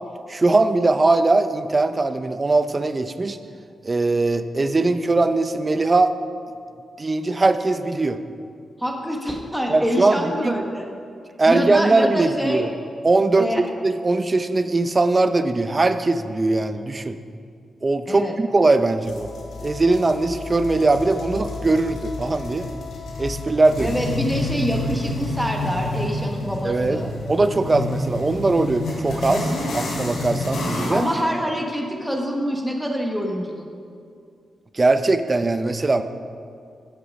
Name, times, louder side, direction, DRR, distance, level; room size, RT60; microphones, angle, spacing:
voice 1, 0.3-3.4 3.8-6.1 7.0-8.2 9.7-10.6 11.4-12.7 13.0-13.5 13.8-17.2 17.8-19.3 19.6-22.7 23.2-24.0 26.6-27.0 27.3-31.0 34.7-36.0, right 3 dB, 30° right, 10 dB, 0.6 m, -20 dB
voice 2, 8.8-10.9 11.5-12.6 13.4-13.6 18.1-18.3 23.8-27.1 30.9-33.6, equal, ahead, 1 dB, 1.2 m, -25 dB
sound 1, 19.0-31.2, left 2 dB, 80° left, 2.7 m, -29 dB
Wind instrument woodwind instrument, 19.2-24.4, left 6 dB, 60° left, 0.8 m, -40 dB
15.5 x 6.7 x 5.3 m, 2.4 s
cardioid pair, 105°, 0 cm